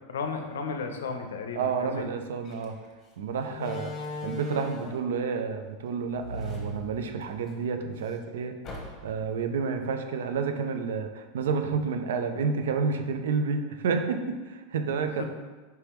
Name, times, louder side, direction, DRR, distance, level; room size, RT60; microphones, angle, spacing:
voice 1, 0.1-2.0 15.2-15.3, left 5 dB, 90° left, 6 dB, 0.5 m, -34 dB
voice 2, 1.5-2.8 3.2-3.9 4.2-8.6 9.0-15.2, right 5 dB, 80° right, 7 dB, 0.4 m, -30 dB
Slam, 2.4-2.6 3.5-5.1 6.1-7.5 7.9-8.0 8.6-9.3, left 1 dB, 35° left, 0.9 m, -37 dB
4.5 x 3.4 x 3.0 m, 1.3 s
hypercardioid pair, 115°, 0 cm